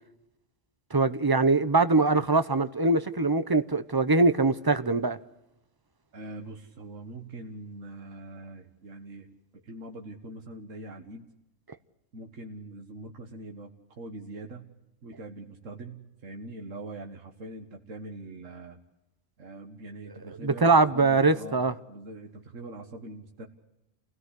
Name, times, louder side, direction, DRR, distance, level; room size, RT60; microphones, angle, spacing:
voice 1, 0.9-5.2 20.4-21.7, right 3 dB, 20° right, 0.8 m, -22 dB
voice 2, 6.1-9.3 9.5-11.3 12.1-14.7 15.0-18.8 19.4-23.5, right 2 dB, 75° right, 2.0 m, -43 dB
28.5 x 17.5 x 8.3 m
omnidirectional pair, 1.3 m